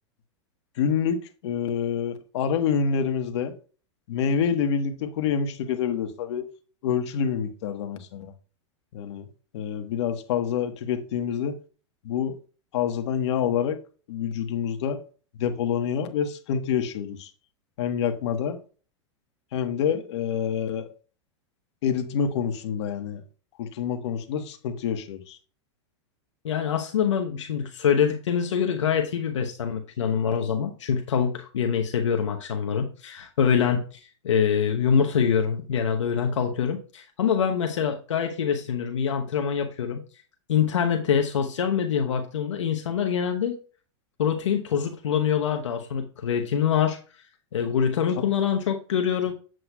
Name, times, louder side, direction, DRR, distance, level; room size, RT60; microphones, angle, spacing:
voice 1, 0.8-3.5 4.1-6.5 6.8-8.3 8.9-9.2 9.5-11.6 12.0-12.4 12.7-13.8 14.1-15.0 15.4-17.3 17.8-18.6 19.5-20.9 21.8-23.2 23.6-25.4, left 7 dB, 65° left, 1.3 m, -27 dB
voice 2, 26.4-40.0 40.5-43.6 44.2-47.0 47.5-49.3, left 7 dB, 90° left, 0.9 m, -25 dB
7.8 x 7.8 x 2.3 m
hypercardioid pair, 120°, 15 cm